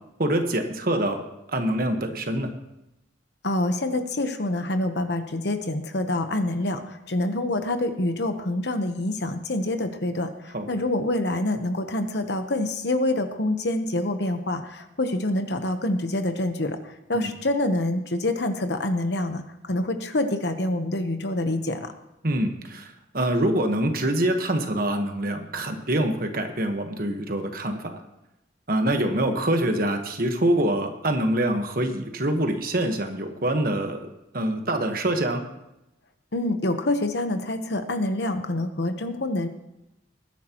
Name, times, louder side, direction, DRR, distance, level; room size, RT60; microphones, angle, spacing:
voice 1, 0.2-1.2 1.5-2.5 10.5-10.7 17.1-17.3 22.2-28.0 28.7-34.1 34.3-35.4, right 1 dB, 50° right, 5 dB, 1.3 m, -25 dB
voice 2, 3.4-16.8 17.1-21.9 36.3-39.5, left 1 dB, 60° left, 8 dB, 1.0 m, -26 dB
20.5 x 10.5 x 3.0 m, 0.91 s
head